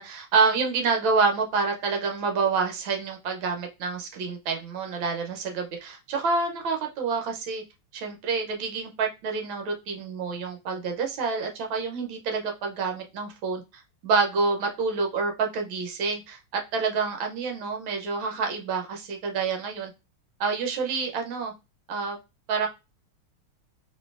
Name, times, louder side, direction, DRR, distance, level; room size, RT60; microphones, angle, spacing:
voice 1, 0.0-7.6 7.9-13.6 14.0-19.9 20.4-21.5 21.9-22.2 22.5-22.7, right 4 dB, 70° right, 3 dB, 1.5 m, -27 dB
4.2 x 3.2 x 2.4 m, 0.26 s
omnidirectional pair, 2.4 m